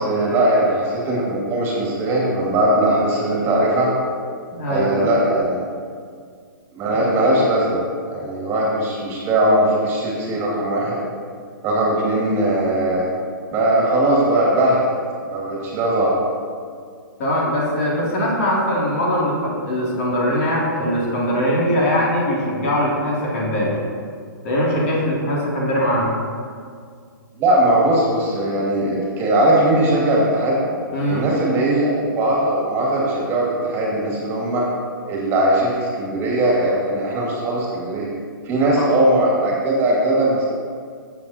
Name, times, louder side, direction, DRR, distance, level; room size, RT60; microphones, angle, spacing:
voice 1, 0.0-3.9 4.7-5.6 6.8-11.0 11.6-13.1 13.5-14.8 15.3-16.2 27.4-30.6 31.1-34.6 35.1-38.1 38.5-40.4, right 1 dB, 20° right, -4 dB, 2.2 m, -19 dB
voice 2, 4.5-4.9 7.0-7.1 17.2-23.8 24.4-26.1 30.9-31.2 38.8-38.9, equal, 40° left, -5 dB, 2.7 m, -21 dB
15.0 x 7.5 x 2.9 m, 2.1 s
hypercardioid pair, 145°, 12 cm